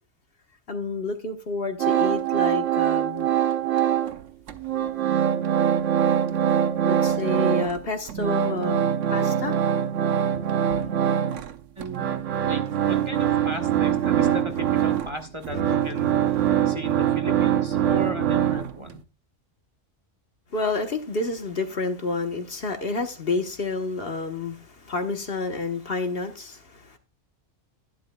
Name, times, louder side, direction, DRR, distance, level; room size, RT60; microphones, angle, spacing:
voice 1, 0.7-3.3 6.8-9.6 10.7-10.9 15.5-15.8 20.5-27.0, left 3 dB, 55° left, 1.3 m, -29 dB
sound 1, 1.8-4.2 4.5-7.8 8.1-19.0, right 10 dB, 85° right, 1.1 m, -23 dB
voice 2, 11.8-19.0, right 1 dB, 25° right, 1.2 m, -36 dB
11.5 x 10.5 x 2.3 m
omnidirectional pair, 1.2 m